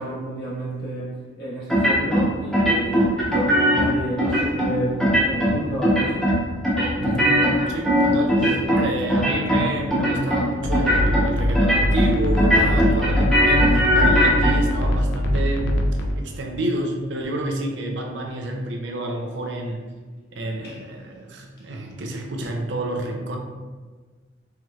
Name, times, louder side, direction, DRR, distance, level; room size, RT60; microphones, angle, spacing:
voice 1, 0.0-6.3 20.6-20.8, equal, 60° left, -7 dB, 1.4 m, -30 dB
sound 1, 1.7-2.3 2.5-3.9 4.2-4.7 5.0-5.5 5.8-6.4 6.6-8.8 9.1-9.6 9.9-10.4 10.7-11.2 11.6-12.1 12.4-14.5, equal, 5° left, 0.8 m, -19 dB
voice 2, 7.0-7.4 7.7-15.7 16.2-19.8 20.3-23.4, right 1 dB, 75° right, 2 dB, 0.5 m, -29 dB
sound 2, 10.6-16.1, equal, 85° left, 0.5 m, -22 dB
4.4 x 3.1 x 2.4 m, 1.4 s
head